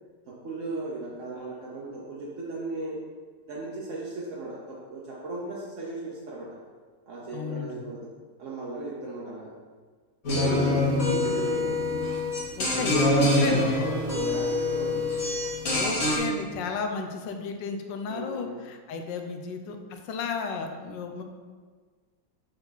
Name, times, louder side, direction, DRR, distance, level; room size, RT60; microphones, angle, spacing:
voice 1, 0.3-3.0 3.5-6.6 7.1-8.1 8.4-9.5 10.3-11.8 12.7-12.9 13.7-15.2 18.1-18.6, right 2 dB, 55° right, -5 dB, 1.0 m, -36 dB
voice 2, 7.3-7.8 10.3-10.5 12.6-13.7 15.7-21.2, left 5 dB, 80° left, 5 dB, 1.4 m, -34 dB
sound 1, 10.2-16.2, left 2 dB, 45° left, 1.9 m, -25 dB
6.9 x 4.4 x 4.0 m, 1.5 s
omnidirectional pair, 2.0 m